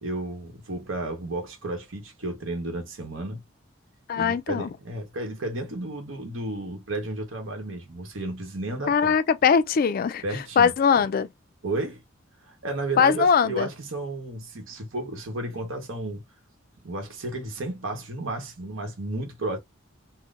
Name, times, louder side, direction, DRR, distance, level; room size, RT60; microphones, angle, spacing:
voice 1, 0.0-3.4 4.1-9.1 10.2-11.0 11.6-12.0 12.5-16.2 16.8-19.6, right 2 dB, 75° right, 1.0 m, -33 dB
voice 2, 4.1-4.7 8.9-11.3 13.0-13.7, left 6 dB, 45° left, 0.3 m, -21 dB
3.6 x 2.1 x 2.4 m
head